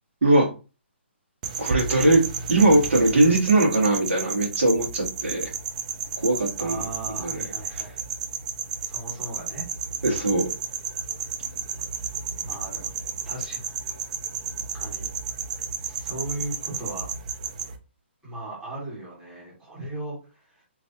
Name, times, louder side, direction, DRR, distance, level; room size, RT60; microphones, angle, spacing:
sound 1, 1.4-17.8, right 6 dB, 35° right, 0.5 m, -32 dB
voice 1, 1.6-2.2 2.5-5.5 6.2-6.8 7.2-7.4 7.7-7.8 10.0-10.5, right 2 dB, 80° right, -2 dB, 1.9 m, -20 dB
voice 2, 6.6-8.0 8.8-9.6 12.4-12.9 13.3-13.6 14.7-15.1 15.8-17.1 18.2-20.2 20.5-20.6, right 2 dB, 10° right, -7 dB, 1.7 m, -37 dB
3.2 x 3.1 x 2.8 m, 0.32 s
hypercardioid pair, 160°, 7 cm